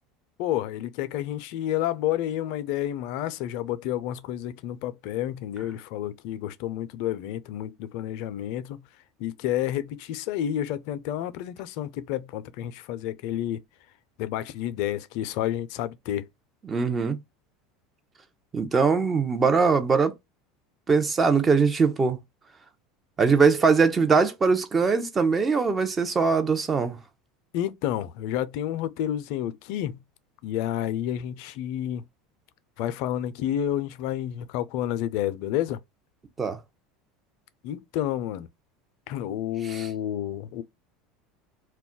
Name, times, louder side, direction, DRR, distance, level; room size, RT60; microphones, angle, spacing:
voice 1, 0.4-8.8 9.2-13.6 14.2-16.3 27.5-30.0 30.4-32.0 32.8-35.8 37.6-38.5 39.1-40.6, left 12 dB, 65° left, 0.4 m, -30 dB
voice 2, 16.7-17.2 18.5-20.1 20.9-22.2 23.2-27.0 36.4-36.6 39.6-39.9, right 5 dB, 25° right, 0.6 m, -22 dB
2.3 x 2.1 x 3.7 m
hypercardioid pair, 95°, 0 cm